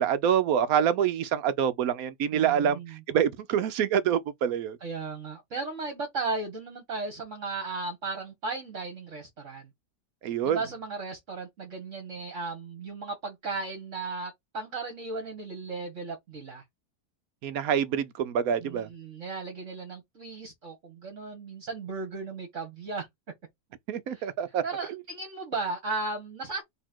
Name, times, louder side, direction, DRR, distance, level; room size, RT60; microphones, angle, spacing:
voice 1, 0.0-4.8 10.2-10.6 17.4-18.9 23.9-24.6, right 8 dB, 70° right, 1.0 m, -26 dB
voice 2, 2.3-3.0 4.8-9.7 10.4-16.6 18.6-23.1 24.1-24.3 24.6-26.6, right 3 dB, 50° right, 1.6 m, -36 dB
4.1 x 2.9 x 4.3 m
omnidirectional pair, 1.7 m